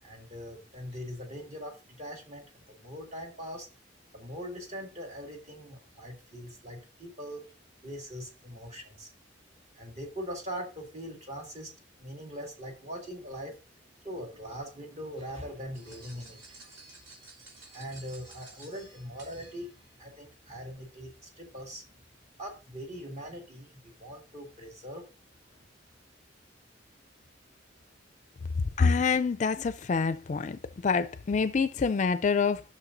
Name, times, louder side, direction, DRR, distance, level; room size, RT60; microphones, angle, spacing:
voice 1, 0.0-3.7 4.1-7.4 7.8-9.1 9.7-11.7 12.0-13.6 14.0-16.8 17.7-19.7 20.0-21.8 22.4-25.0, equal, 40° right, 2.1 m, -41 dB
sound 1, 15.7-20.0, right 3 dB, 70° right, 3.4 m, -53 dB
voice 2, 28.8-32.6, left 5 dB, 40° left, 0.4 m, -26 dB
11.5 x 6.4 x 2.6 m
head